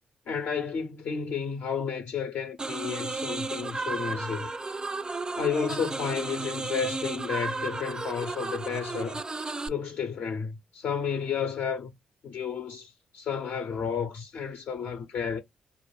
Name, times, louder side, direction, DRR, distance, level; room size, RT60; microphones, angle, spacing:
voice 1, 0.3-4.5 5.4-9.2 9.7-11.9 12.2-15.4, left 6 dB, 60° left, 0.6 m, -32 dB
sound 1, 2.6-9.7, right 3 dB, 25° right, 0.4 m, -33 dB
2.2 x 2.0 x 3.2 m
hypercardioid pair, 40°, 3 cm